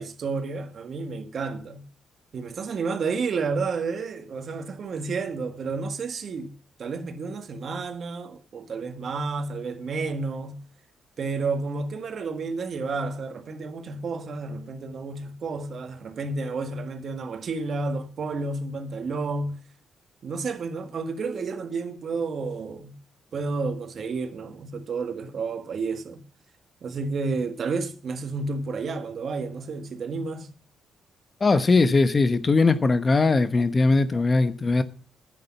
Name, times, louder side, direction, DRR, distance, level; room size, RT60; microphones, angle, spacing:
voice 1, 0.0-1.9 2.3-6.5 6.8-10.6 11.2-19.6 20.2-23.0 23.3-26.2 26.8-30.5, right 4 dB, 50° right, 1.7 m, -31 dB
voice 2, 31.4-34.8, left 3 dB, 30° left, 1.0 m, -20 dB
10.5 x 8.5 x 7.2 m
cardioid pair, 90°, 0 cm